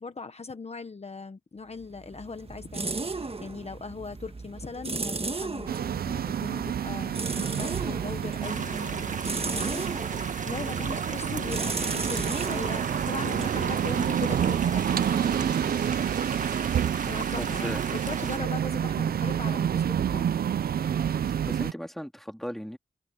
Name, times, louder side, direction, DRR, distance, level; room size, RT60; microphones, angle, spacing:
voice 1, 0.0-15.9 17.0-20.4, left 4 dB, 45° left, 1.1 m, -40 dB
sound 1, 1.8-14.5, right 3 dB, 40° right, 1.5 m, -36 dB
sound 2, 5.7-21.7, right 9 dB, 85° right, 0.4 m, -29 dB
sound 3, 8.4-18.4, right 4 dB, 55° right, 1.7 m, -37 dB
voice 2, 17.3-17.8 21.4-22.8, equal, ahead, 2.8 m, -36 dB
open air
cardioid pair, 70°, 15 cm